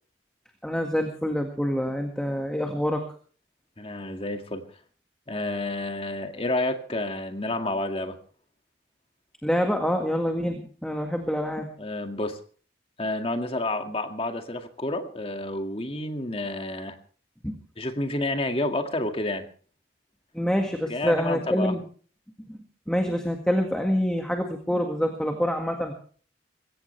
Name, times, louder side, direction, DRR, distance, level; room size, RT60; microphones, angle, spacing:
voice 1, 0.6-3.0 9.4-11.7 17.4-17.6 20.3-21.8 22.5-22.6 22.9-25.9, equal, 5° left, 3 dB, 1.8 m, -26 dB
voice 2, 3.8-4.6 5.3-8.2 11.8-12.4 13.0-17.0 17.8-19.4 20.9-21.8, left 1 dB, 30° left, 5 dB, 2.1 m, -29 dB
22.0 x 17.0 x 3.3 m, 0.42 s
head